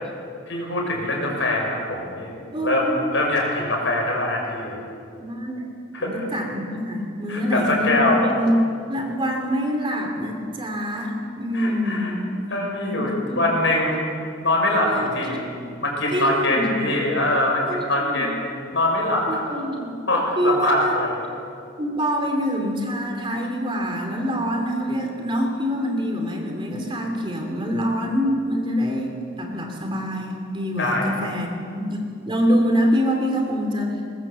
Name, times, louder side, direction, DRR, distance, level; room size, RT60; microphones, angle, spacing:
voice 1, 0.5-2.3 2.6-4.8 5.9-6.3 7.3-8.3 11.5-12.1 12.5-14.1 14.4-15.5 15.8-18.5 18.7-19.4 20.1-21.2 30.8-31.1, left 1 dB, 65° left, 0 dB, 6.0 m, -23 dB
voice 2, 2.5-2.9 5.2-5.6 6.0-8.5 8.9-12.2 12.8-13.4 14.8-15.4 16.1-16.7 17.6-18.3 19.3-19.9 20.4-20.9 21.8-32.0 32.3-34.0, equal, 25° right, 2 dB, 2.8 m, -25 dB
21.0 x 20.5 x 7.5 m, 2.4 s
head